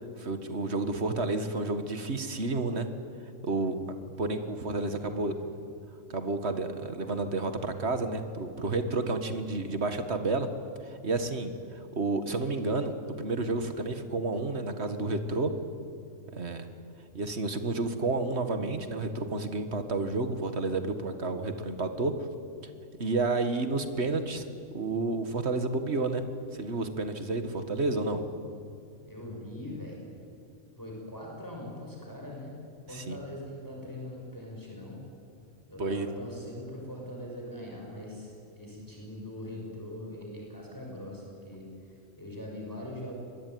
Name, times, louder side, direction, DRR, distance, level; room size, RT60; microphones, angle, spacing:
voice 1, 0.2-2.9 3.4-3.8 4.2-5.4 6.1-10.5 10.8-15.5 16.3-16.7 17.1-22.1 23.0-24.4 24.7-26.2 26.5-28.2 32.9-33.2 35.8-36.1, right 3 dB, 55° right, 8 dB, 2.0 m, -30 dB
voice 2, 4.8-5.3 29.1-30.0 30.8-32.5 32.9-35.0 35.7-43.2, left 1 dB, 15° left, -2 dB, 6.3 m, -42 dB
25.0 x 21.0 x 9.4 m, 2.4 s
omnidirectional pair, 1.4 m